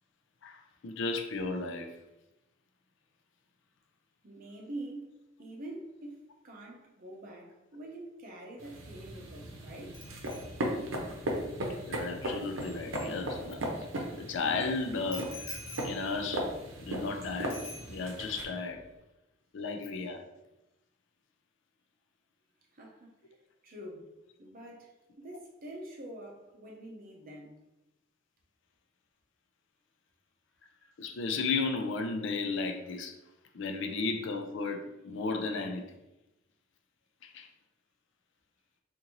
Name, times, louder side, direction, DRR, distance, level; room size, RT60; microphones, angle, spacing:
voice 1, 0.4-1.9 11.8-13.7 14.2-16.5 16.8-17.6 17.9-18.8 19.5-20.2 31.0-33.1 33.5-35.9 37.2-37.5, left 4 dB, 65° left, 0.4 m, -34 dB
voice 2, 4.2-5.1 5.4-10.0 22.7-23.1 23.6-24.1 24.4-24.9 25.2-27.6, right 1 dB, 45° right, 0.7 m, -45 dB
sound 1, 8.6-18.4, right 1 dB, 80° right, 0.7 m, -37 dB
Bicycle bell, 9.9-13.8 15.1-17.1 17.5-18.4 18.6-18.9, left 2 dB, 50° left, 1.1 m, -49 dB
3.8 x 2.6 x 2.9 m
head